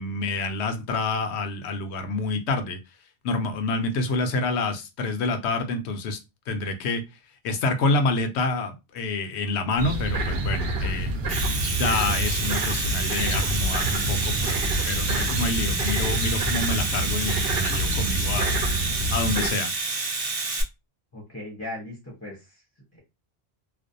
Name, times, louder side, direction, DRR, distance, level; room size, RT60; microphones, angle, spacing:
voice 1, 0.0-2.8 3.2-6.2 6.5-7.0 7.4-11.1 11.8-18.5 19.1-19.7, left 3 dB, 85° left, 0.8 m, -27 dB
sound 1, 9.7-19.5, right 1 dB, 70° right, 0.8 m, -27 dB
Domestic sounds home sounds, 11.1-20.6, right 3 dB, 45° right, 0.5 m, -29 dB
voice 2, 21.1-22.6 22.9-23.0, left 1 dB, 15° left, 0.7 m, -38 dB
2.5 x 2.0 x 2.5 m
omnidirectional pair, 1.1 m